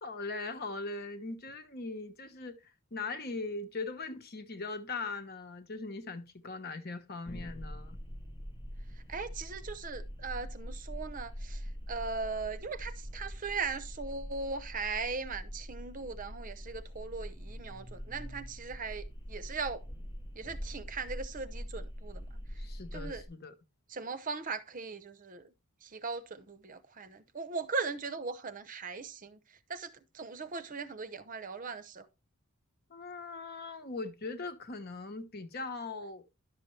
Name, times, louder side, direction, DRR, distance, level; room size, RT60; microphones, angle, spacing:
voice 1, 0.0-2.6 2.9-8.0 22.6-23.5 32.9-36.3, left 3 dB, 45° left, 1.0 m, -40 dB
sound 1, 7.3-23.2, equal, 20° left, 0.7 m, -43 dB
voice 2, 9.1-11.6 11.9-19.8 20.3-22.3 22.9-23.2 23.9-25.5 25.8-29.4 29.7-32.1, right 4 dB, 35° right, 0.7 m, -39 dB
11.0 x 6.7 x 3.2 m
head